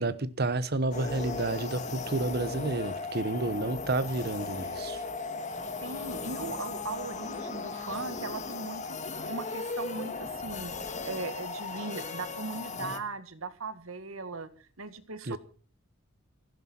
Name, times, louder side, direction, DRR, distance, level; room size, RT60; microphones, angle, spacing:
voice 1, 0.0-5.0 15.3-15.4, right 2 dB, 50° right, 1.0 m, -30 dB
sound 1, 0.9-13.0, left 3 dB, 35° left, 1.5 m, -37 dB
voice 2, 5.8-9.0 9.3-15.4, right 3 dB, 80° right, 1.8 m, -39 dB
18.5 x 15.5 x 4.4 m
head